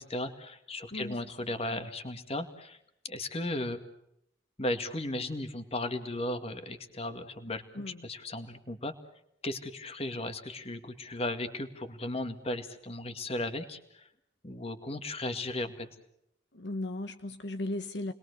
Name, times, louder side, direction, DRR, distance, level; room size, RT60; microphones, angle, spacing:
voice 1, 0.0-2.8 3.0-3.8 4.6-8.9 9.4-14.1 14.4-15.9, left 1 dB, 35° left, 8 dB, 2.1 m, -36 dB
voice 2, 16.5-18.1, left 1 dB, 70° left, 8 dB, 1.2 m, -36 dB
30.0 x 21.5 x 6.7 m, 0.78 s
head